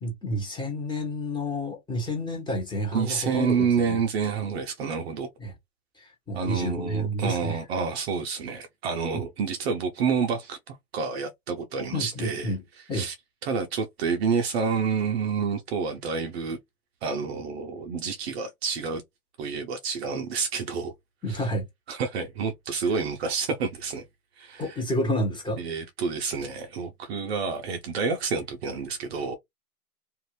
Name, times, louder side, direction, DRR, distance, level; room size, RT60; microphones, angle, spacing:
voice 1, 0.0-4.0 5.4-5.5 6.0-7.6 9.1-9.2 11.9-12.6 12.9-13.1 21.2-21.7 24.6-25.6, equal, 10° left, 1.3 m, -30 dB
voice 2, 2.9-5.3 6.3-12.5 12.9-13.1 13.4-16.6 17.0-19.0 19.4-20.9 21.3-21.5 21.9-24.0 24.4-24.8 25.6-29.4, right 5 dB, 45° right, 0.7 m, -29 dB
2.6 x 2.6 x 3.1 m
hypercardioid pair, 130°, 46 cm